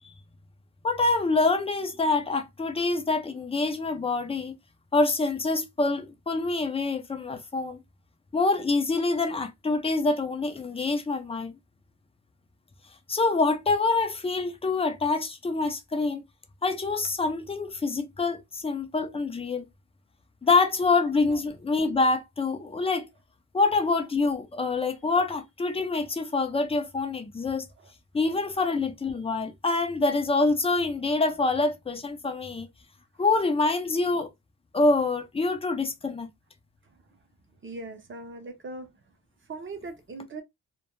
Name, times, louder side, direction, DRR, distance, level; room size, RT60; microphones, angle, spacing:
voice 1, 0.8-4.6 4.9-7.8 8.3-11.5 13.1-16.2 16.6-19.7 20.4-23.1 23.5-27.7 28.1-32.7 33.2-34.3 34.7-36.3, left 3 dB, 15° left, 0.3 m, -26 dB
voice 2, 37.6-38.9 39.5-40.4, right 3 dB, 30° right, 0.6 m, -39 dB
2.2 x 2.1 x 2.9 m
cardioid pair, 115°, 39 cm